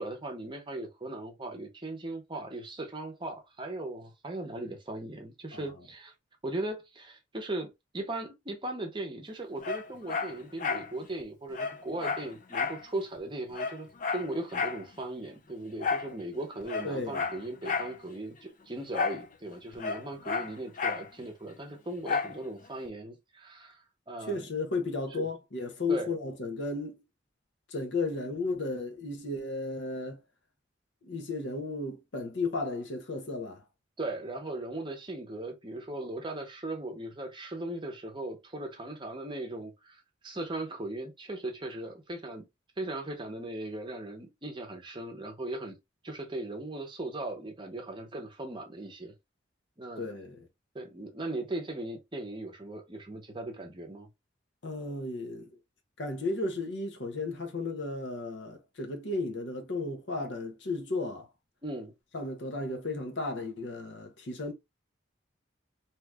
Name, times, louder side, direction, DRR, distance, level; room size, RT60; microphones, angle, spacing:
voice 1, 0.0-6.1 6.4-24.5 25.1-25.3 25.9-26.1 34.0-42.4 42.8-45.7 46.0-49.1 49.8-50.1 50.7-54.1 61.6-61.9, right 2 dB, 25° right, 0.8 m, -38 dB
Dog, 9.6-10.9 11.2-11.3 11.5-12.8 13.2-13.3 13.5-14.8 15.8-16.1 16.6-17.9 18.9-19.3 19.5-21.1 22.0-22.4 22.9-23.0, left 5 dB, 45° left, 0.4 m, -32 dB
voice 2, 16.8-17.3 24.3-26.9 27.7-30.2 31.0-33.6 50.0-50.5 54.6-55.6 56.0-61.3 62.1-64.5, left 3 dB, 70° left, 0.8 m, -34 dB
2.8 x 2.5 x 3.3 m
head